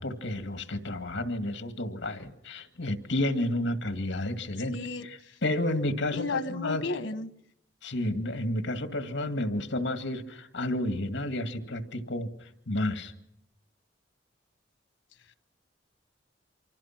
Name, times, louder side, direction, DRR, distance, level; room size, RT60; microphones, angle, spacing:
voice 1, 0.0-4.8 5.0-6.8 7.8-13.1, left 1 dB, 70° left, 8 dB, 2.1 m, -31 dB
voice 2, 4.7-5.4 6.1-7.3, left 3 dB, 90° left, 13 dB, 1.2 m, -33 dB
28.5 x 25.0 x 6.0 m, 0.73 s
head